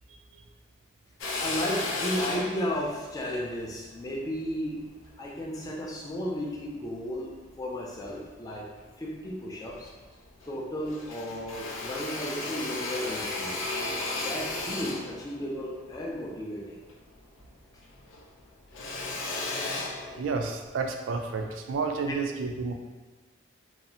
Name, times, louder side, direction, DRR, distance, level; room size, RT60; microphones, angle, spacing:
Drill, 1.2-5.7 6.3-7.5 7.9-8.9 9.2-9.3 9.6-10.6 10.8-17.5 17.8-20.7, left 2 dB, 90° left, 0.4 m, -35 dB
voice 1, 1.2-8.7 9.0-9.9 10.5-13.6 14.2-16.8 22.1-22.2, equal, 20° left, -3 dB, 0.3 m, -34 dB
voice 2, 20.2-22.7, right 4 dB, 80° right, 4 dB, 0.3 m, -31 dB
2.7 x 2.0 x 2.6 m, 1.3 s
head